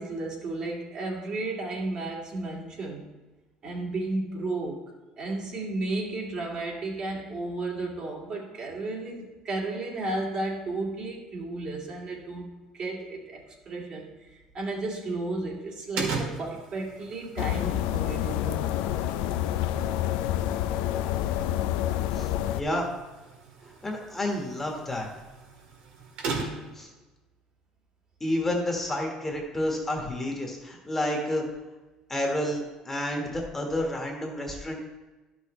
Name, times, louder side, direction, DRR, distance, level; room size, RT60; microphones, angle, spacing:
voice 1, 0.0-3.1 3.6-4.8 5.2-14.1 14.5-18.8 23.6-23.7, right 2 dB, 45° right, -2 dB, 2.0 m, -33 dB
sound 1, 16.0-26.8, right 4 dB, 80° right, 1.7 m, -39 dB
sound 2, 17.4-22.6, left 12 dB, 85° left, 0.4 m, -28 dB
voice 2, 22.1-22.9 23.8-25.1 26.7-26.9 28.2-31.4 32.1-34.8, left 1 dB, 15° left, 0 dB, 1.4 m, -30 dB
11.5 x 6.2 x 3.1 m, 1.2 s
cardioid pair, 125°, 2 cm